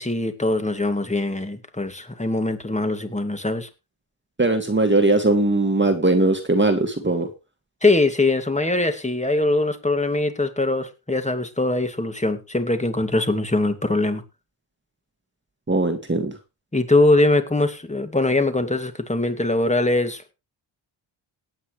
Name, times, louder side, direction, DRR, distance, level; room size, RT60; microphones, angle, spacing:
voice 1, 0.0-3.7 7.8-14.2 16.7-20.3, left 2 dB, 15° left, 2.4 m, -22 dB
voice 2, 4.4-7.3 15.7-16.3, right 2 dB, 25° right, 2.1 m, -20 dB
18.0 x 8.9 x 3.3 m
cardioid pair, 75°, 48 cm